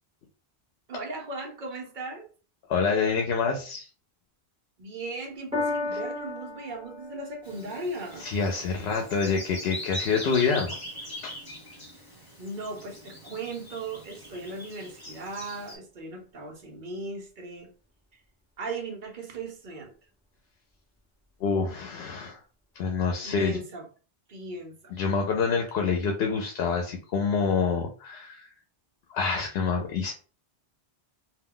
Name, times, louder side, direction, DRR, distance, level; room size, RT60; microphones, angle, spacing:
voice 1, 0.9-2.3 4.8-8.3 12.4-17.7 18.1-18.2 18.6-19.9 23.2-23.9 24.3-24.9, right 2 dB, 55° right, 0.7 m, -37 dB
voice 2, 2.7-3.9 8.2-10.8 11.2-11.3 21.4-22.4 22.8-23.6 24.9-28.4 29.1-30.2, left 5 dB, 85° left, 0.8 m, -27 dB
Piano, 5.5-12.1 12.9-13.0, left 3 dB, 5° right, 0.9 m, -37 dB
Bird vocalization bird call bird song, 7.4-15.8, left 1 dB, 20° left, 1.0 m, -42 dB
2.2 x 2.2 x 3.6 m
omnidirectional pair, 1.0 m